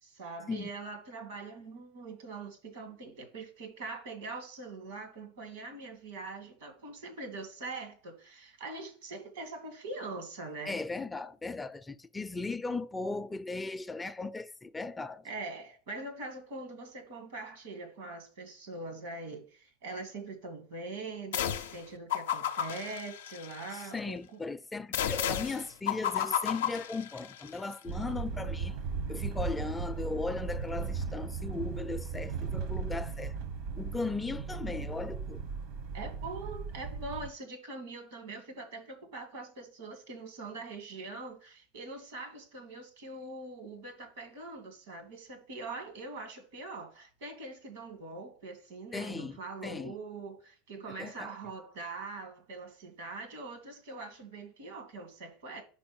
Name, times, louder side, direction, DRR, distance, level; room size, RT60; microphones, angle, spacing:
voice 1, 0.0-10.8 15.2-24.2 35.9-55.6, right 3 dB, 85° right, 2.0 m, -43 dB
voice 2, 10.7-15.3 23.7-28.8 29.1-33.3 33.8-35.4 48.9-49.9 51.0-51.3, left 3 dB, 15° left, 0.4 m, -37 dB
sound 1, 21.3-21.8 22.1-23.9 24.9-27.5, left 9 dB, 90° left, 0.5 m, -33 dB
sound 2, 27.9-37.3, right 5 dB, 65° right, 1.0 m, -37 dB
5.2 x 4.3 x 5.3 m
hypercardioid pair, 105°, 0 cm